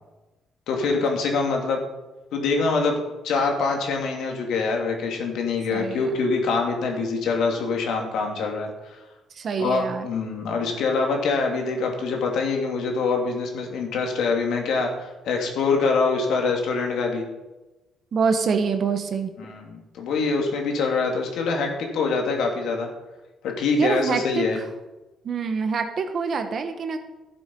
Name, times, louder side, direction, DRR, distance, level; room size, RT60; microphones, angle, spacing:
voice 1, 0.7-1.8 2.3-8.7 9.6-17.2 19.4-22.9 23.4-24.6, left 4 dB, 80° left, 1 dB, 2.3 m, -24 dB
voice 2, 5.7-6.1 9.3-10.1 18.1-19.3 23.8-24.7 25.2-27.0, right 5 dB, 45° right, 7 dB, 1.3 m, -25 dB
12.0 x 7.4 x 5.4 m, 1.1 s
cardioid pair, 120°, 0 cm